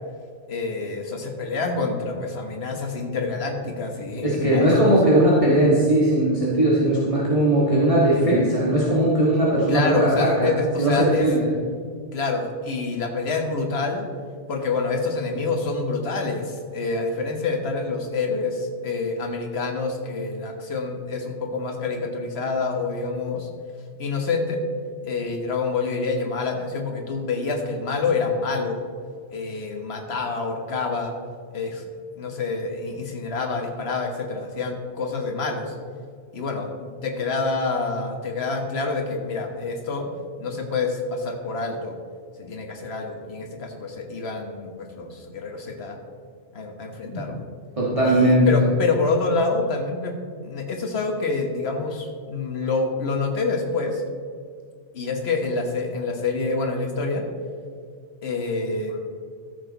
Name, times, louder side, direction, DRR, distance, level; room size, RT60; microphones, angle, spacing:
voice 1, 0.5-4.9 9.7-11.3 12.1-14.1 14.5-23.5 24.0-24.6 25.0-28.8 29.3-31.1 31.5-31.8 32.2-35.7 36.3-40.0 40.4-41.9 42.4-46.0 46.5-47.4 48.0-50.1 50.4-54.0 54.9-57.2 58.2-59.0, left 3 dB, 60° left, 3 dB, 1.5 m, -27 dB
voice 2, 4.2-11.5 47.0-47.2 47.8-48.6, right 1 dB, 30° right, -6 dB, 1.6 m, -19 dB
13.5 x 6.9 x 4.0 m, 2.1 s
omnidirectional pair, 1.2 m